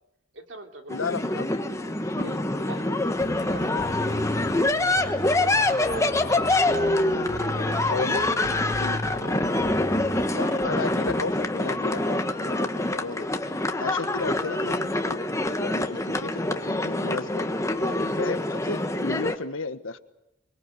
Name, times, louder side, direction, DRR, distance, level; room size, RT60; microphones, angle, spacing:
voice 1, 0.3-1.0 1.8-3.1 3.4-3.9 4.5-6.6 7.3-9.5 10.4-10.6, right 2 dB, 65° right, 4 dB, 2.9 m, -43 dB
voice 2, 0.9-1.5 2.1-2.3 7.8-8.2 8.8-9.0 10.3-13.3 13.8-15.3 15.6-17.5 17.8-20.0, left 3 dB, 90° left, 10 dB, 1.4 m, -33 dB
sound 1, 0.9-19.3, left 2 dB, 15° left, 1.2 m, -26 dB
sound 2, 3.2-10.3, left 1 dB, 50° left, 1.9 m, -35 dB
sound 3, 9.2-12.0, left 1 dB, 65° left, 2.9 m, -49 dB
24.5 x 24.0 x 8.2 m, 0.88 s
head